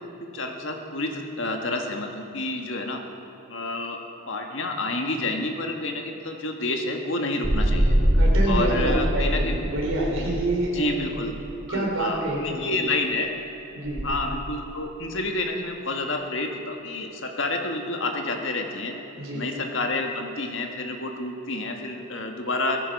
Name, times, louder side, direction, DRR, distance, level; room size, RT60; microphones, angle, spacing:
voice 1, 0.3-3.0 3.5-4.0 4.3-7.9 8.5-9.6 10.7-11.3 11.7-13.3 14.0-19.0 19.3-22.8, left 2 dB, 65° left, 3 dB, 1.5 m, -29 dB
sound 1, 7.4-11.9 13.9-14.1, equal, 85° right, 2.1 m, -23 dB
voice 2, 8.1-11.0 11.7-12.9 13.7-14.1 19.2-19.5, right 1 dB, 70° right, -2 dB, 3.3 m, -27 dB
17.5 x 14.5 x 5.3 m, 2.8 s
head